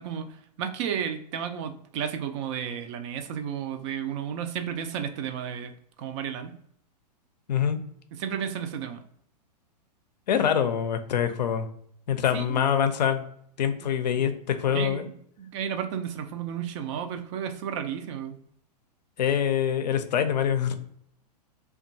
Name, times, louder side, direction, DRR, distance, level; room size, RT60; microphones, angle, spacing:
voice 1, 0.0-5.7 6.0-6.6 8.1-9.0 12.3-12.6 13.8-13.9 14.2-14.3 14.7-15.1 15.4-18.4, right 8 dB, 45° right, 8 dB, 0.4 m, -33 dB
voice 2, 7.5-7.8 10.3-11.7 12.1-13.2 13.6-15.1 19.2-20.7, left 8 dB, 80° left, 9 dB, 0.4 m, -25 dB
2.8 x 2.2 x 2.5 m, 0.69 s
hypercardioid pair, 110°, 21 cm